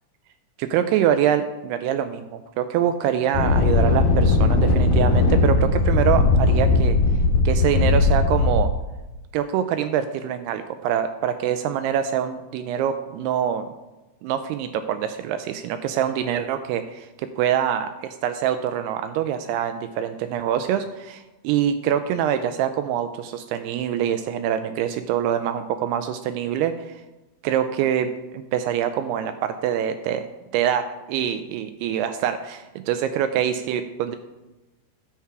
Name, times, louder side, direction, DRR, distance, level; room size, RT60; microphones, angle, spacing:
voice 1, 0.6-7.0 7.5-8.7 9.3-13.7 14.2-17.1 17.4-27.0 27.4-30.2 30.5-34.2, right 9 dB, 85° right, 9 dB, 2.4 m, -25 dB
sound 1, 3.3-8.7, left 3 dB, 65° left, 2.7 m, -18 dB
10.0 x 7.1 x 4.7 m, 1.1 s
omnidirectional pair, 4.9 m